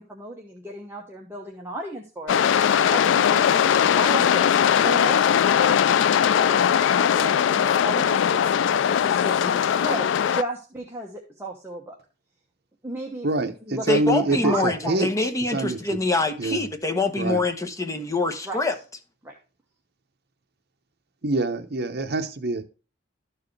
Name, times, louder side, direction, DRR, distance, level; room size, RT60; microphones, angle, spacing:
voice 1, 0.0-2.4 2.9-4.5 4.8-6.6 6.9-12.0 12.8-13.3 13.7-13.8 14.2-15.0 18.4-18.6 19.2-19.3, right 2 dB, 15° right, 1.1 m, -34 dB
sound 1, 2.3-10.4, left 8 dB, 75° left, 0.3 m, -20 dB
voice 2, 13.2-15.1 15.5-15.8 16.4-16.7 17.2-17.4 21.2-22.6, right 2 dB, 55° right, 0.9 m, -25 dB
voice 3, 13.9-18.7, left 2 dB, 15° left, 0.9 m, -25 dB
13.0 x 4.8 x 3.2 m
head